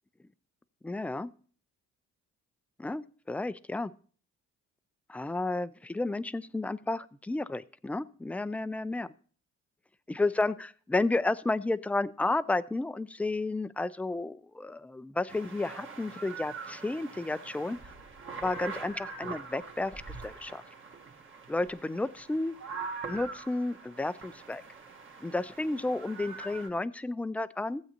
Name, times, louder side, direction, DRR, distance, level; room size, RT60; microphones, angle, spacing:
voice 1, 0.8-1.3 2.8-3.9 5.1-9.1 10.1-17.8 18.4-20.6 21.5-22.6 23.1-24.6 25.2-27.8, left 2 dB, 5° left, 15 dB, 0.4 m, -32 dB
sound 1, 15.3-26.7, right 4 dB, 40° right, 1.4 m, -43 dB
15.5 x 8.0 x 2.9 m, 0.43 s
cardioid pair, 90°, 30 cm